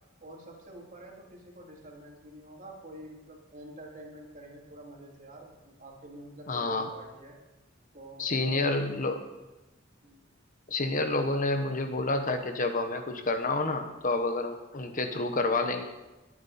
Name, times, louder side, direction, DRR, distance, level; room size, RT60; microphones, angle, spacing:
voice 1, 0.2-7.4 7.9-9.1 10.0-10.3, right 1 dB, 40° right, -1 dB, 3.0 m, -48 dB
voice 2, 6.5-6.9 8.2-9.2 10.7-15.8, left 2 dB, 40° left, 6 dB, 1.1 m, -29 dB
22.0 x 9.3 x 4.3 m, 1.1 s
head